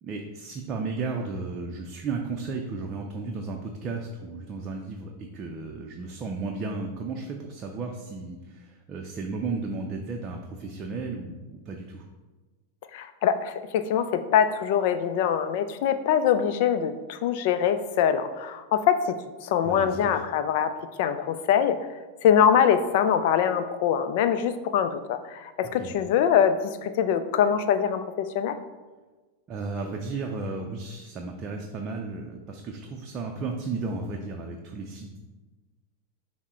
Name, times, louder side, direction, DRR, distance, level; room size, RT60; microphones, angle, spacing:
voice 1, 0.0-12.0 19.6-20.2 25.8-25.9 29.5-35.2, right 3 dB, 35° right, 1 dB, 0.5 m, -34 dB
voice 2, 12.9-20.7 21.0-21.8 22.2-28.6, left 8 dB, 60° left, 10 dB, 0.4 m, -23 dB
5.8 x 2.1 x 4.3 m, 1.2 s
hypercardioid pair, 100°, 0 cm